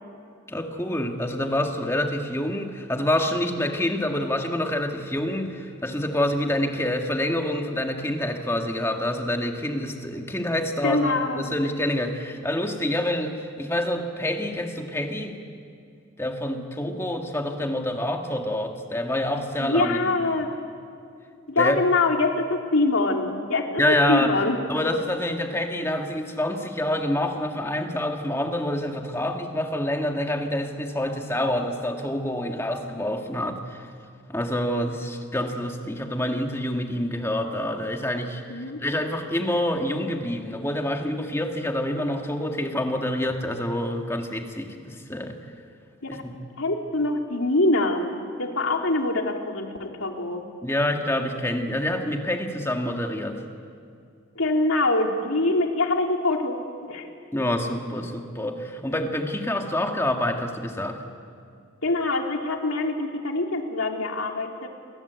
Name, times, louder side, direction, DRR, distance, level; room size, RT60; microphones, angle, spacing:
voice 1, 0.5-15.4 16.2-20.1 21.6-21.8 23.8-24.3 24.7-33.9 34.3-45.4 46.1-46.4 50.6-53.4 57.3-61.0, left 1 dB, 15° left, 3 dB, 1.9 m, -27 dB
voice 2, 10.8-11.4 19.6-20.5 21.5-24.6 38.5-38.8 46.0-46.2 46.6-48.1 48.4-50.4 54.3-56.6 56.9-57.1 61.8-64.7, left 2 dB, 90° left, 2 dB, 3.1 m, -24 dB
29.0 x 22.0 x 8.2 m, 2.5 s
head